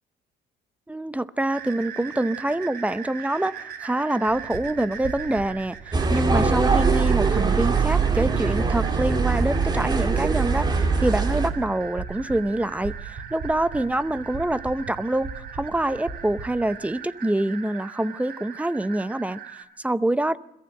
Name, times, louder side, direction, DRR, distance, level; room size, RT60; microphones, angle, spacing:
voice 1, 0.9-20.4, right 1 dB, 10° right, 0.7 m, -26 dB
sound 1, 1.5-19.6, right 8 dB, 70° right, 3.7 m, -40 dB
sound 2, 4.3-16.7, right 4 dB, 55° right, 5.6 m, -39 dB
sound 3, 5.9-11.5, right 4 dB, 25° right, 2.8 m, -22 dB
26.0 x 14.5 x 7.8 m
cardioid pair, 110°, 17 cm